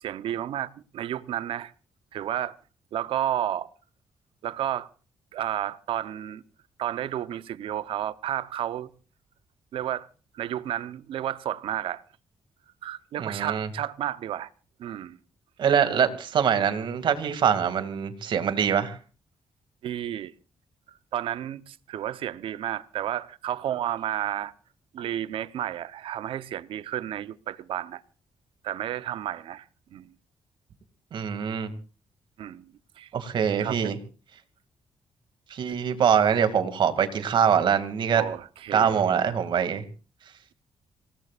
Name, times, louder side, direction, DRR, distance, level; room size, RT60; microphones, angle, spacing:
voice 1, 0.0-1.7 2.1-2.6 2.9-3.7 4.4-4.9 5.3-6.4 6.8-8.9 9.7-10.1 10.3-12.0 12.8-14.5 14.8-15.2 19.8-20.3 21.1-24.5 24.9-28.0 28.6-29.6 29.9-30.1 32.4-32.7 33.0-33.1 33.6-33.8 38.1-39.1, right 11 dB, 90° right, 0.9 m, -31 dB
voice 2, 13.2-13.7 15.6-19.0 31.1-31.7 33.1-34.0 35.5-38.2 38.7-39.8, right 7 dB, 60° right, 2.4 m, -24 dB
26.5 x 18.0 x 2.5 m
wide cardioid pair, 150°, 9 cm